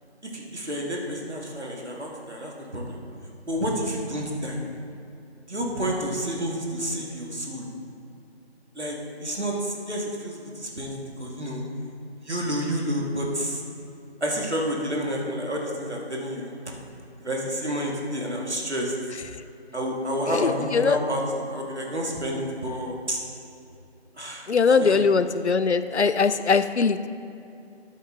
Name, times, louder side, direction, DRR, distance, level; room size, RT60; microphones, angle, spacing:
voice 1, 0.3-3.0 3.5-4.6 5.5-7.7 8.8-11.6 12.2-13.6 14.2-16.5 17.2-18.9 19.7-23.2 24.2-25.0, equal, 75° right, -1 dB, 2.0 m, -29 dB
voice 2, 20.3-21.0 24.5-27.1, left 5 dB, 75° left, 12 dB, 0.5 m, -21 dB
12.0 x 5.6 x 3.8 m, 2.7 s
figure-of-eight pair, 175°, 34 cm